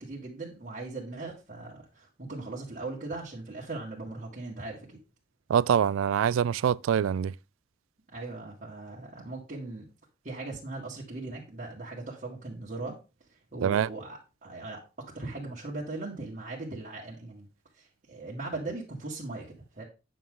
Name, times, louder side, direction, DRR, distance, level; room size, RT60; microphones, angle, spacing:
voice 1, 0.0-5.0 8.1-9.9 10.2-13.0 13.3-17.5 17.7-19.8, right 2 dB, 40° right, 1.8 m, -39 dB
voice 2, 5.5-7.3 13.6-13.9, right 8 dB, 90° right, 0.3 m, -24 dB
9.2 x 6.3 x 3.7 m
head